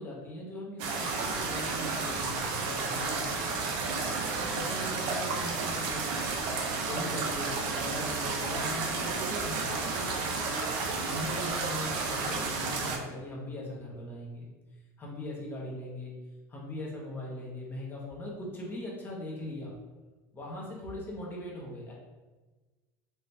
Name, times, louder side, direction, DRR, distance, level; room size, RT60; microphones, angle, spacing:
voice 1, 0.0-3.6 4.5-6.2 6.8-10.1 11.0-14.5 15.0-16.2 16.5-19.7 20.3-21.9, left 1 dB, 25° left, -4 dB, 0.9 m, -40 dB
sound 1, 0.8-13.0, right 4 dB, 60° right, 0.7 m, -32 dB
4.3 x 2.9 x 3.2 m, 1.2 s
supercardioid pair, 140°, 9 cm